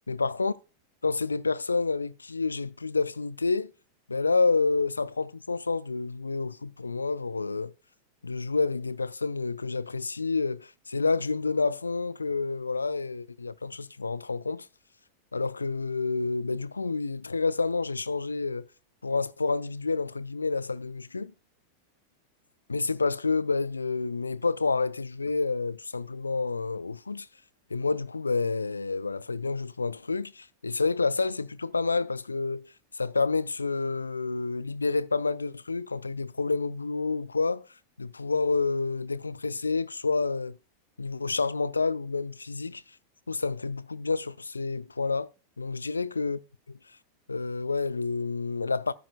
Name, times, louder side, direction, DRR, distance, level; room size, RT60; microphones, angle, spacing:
voice 1, 0.1-0.5 1.0-3.7 4.1-7.7 8.2-14.7 15.3-18.7 19.0-21.3 22.7-27.3 27.7-37.7 38.0-40.6 41.0-42.8 43.3-45.3 45.6-46.4 47.3-48.9, left 4 dB, 80° left, 0.4 m, -29 dB
12.5 x 9.4 x 2.2 m
figure-of-eight pair, 90°, 0 cm